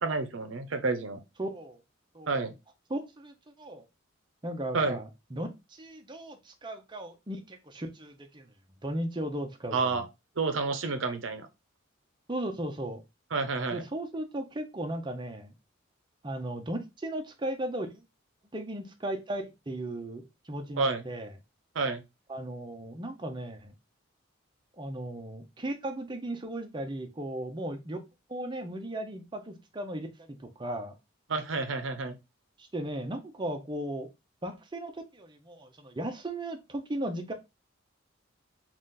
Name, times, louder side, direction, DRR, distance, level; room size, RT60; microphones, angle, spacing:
voice 1, 0.0-1.2 2.3-2.5 4.7-5.0 9.7-10.1 10.4-11.5 13.3-13.8 20.8-21.0 21.7-22.0 31.3-32.1, right 4 dB, 70° right, 0.7 m, -29 dB
voice 2, 1.4-1.8 2.1-2.4 2.9-3.8 4.4-8.5 8.8-10.0 12.3-13.0 13.7-15.5 16.2-18.0 18.5-21.3 22.3-23.7 24.8-28.0 28.3-30.9 32.6-34.1 34.4-37.3, right 1 dB, 25° right, 0.6 m, -36 dB
4.0 x 2.5 x 3.7 m
head